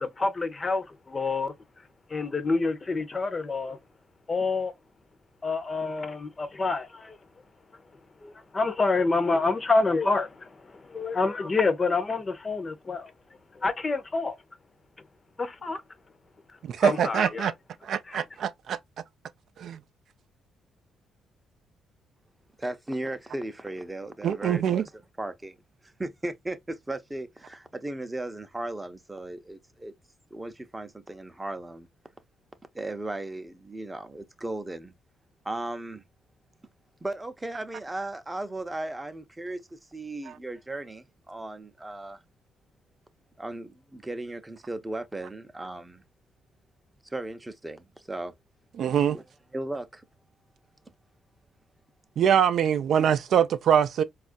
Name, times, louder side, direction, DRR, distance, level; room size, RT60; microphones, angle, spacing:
voice 1, 0.0-1.5 2.1-3.8 4.3-4.7 5.4-7.2 8.2-13.1 13.5-14.4 15.4-15.8 16.8-17.5 18.1-18.2, left 3 dB, 30° left, 0.6 m, -27 dB
voice 2, 16.7-17.5 17.8-18.8 19.6-19.8 24.2-24.8 48.8-49.2 52.2-54.0, right 8 dB, 65° right, 0.4 m, -23 dB
voice 3, 22.6-25.6 25.8-29.9 30.3-31.9 32.7-34.9 35.4-36.0 37.0-42.2 43.4-46.0 47.0-48.4 49.1-49.2 49.5-50.0, right 2 dB, 15° right, 0.6 m, -36 dB
4.2 x 2.4 x 2.4 m
cardioid pair, 90°, 0 cm